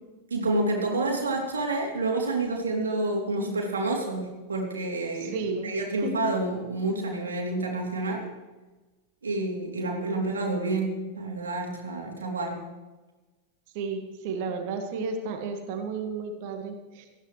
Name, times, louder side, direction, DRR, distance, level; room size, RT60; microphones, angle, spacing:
voice 1, 0.3-5.4 5.6-8.3 9.2-12.6, right 2 dB, 70° right, 0 dB, 3.4 m, -29 dB
voice 2, 5.2-5.7 6.0-6.3 13.7-17.1, right 4 dB, 50° right, 5 dB, 1.9 m, -33 dB
18.5 x 14.5 x 3.3 m, 1.2 s
figure-of-eight pair, 90°, 0 cm